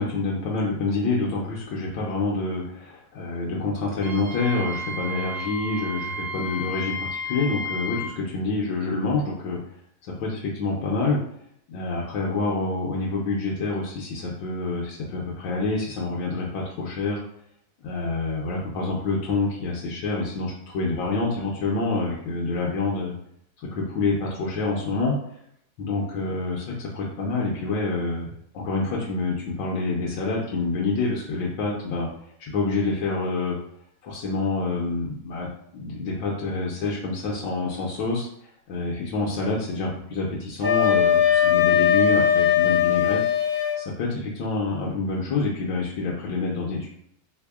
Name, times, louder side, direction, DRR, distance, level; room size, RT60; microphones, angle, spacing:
voice 1, 0.0-9.6 10.0-11.2 11.7-17.2 17.8-23.1 23.6-25.2 25.8-32.1 32.4-33.6 34.0-38.3 38.7-43.2 43.8-46.9, left 3 dB, 75° left, -3 dB, 1.3 m, -27 dB
Wind instrument woodwind instrument, 4.0-8.1, left 1 dB, 75° right, 1.4 m, -32 dB
Wind instrument woodwind instrument 2, 40.6-43.8, left 9 dB, 55° right, 0.6 m, -20 dB
3.4 x 3.3 x 2.3 m, 0.69 s
omnidirectional pair, 2.1 m